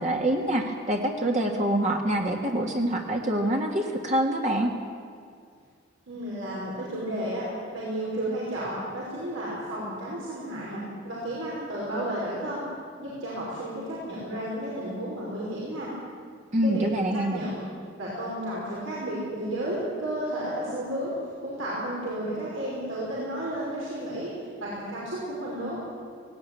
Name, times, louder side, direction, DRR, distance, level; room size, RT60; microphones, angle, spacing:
voice 1, 0.0-4.7 16.5-17.4, right 1 dB, 35° right, 1 dB, 1.5 m, -25 dB
voice 2, 6.1-7.5 7.7-12.6 13.0-15.9 16.6-17.7 18.0-21.1 21.4-24.3 24.6-25.8, right 1 dB, 85° right, -7 dB, 5.3 m, -32 dB
18.5 x 17.5 x 9.1 m, 2.2 s
head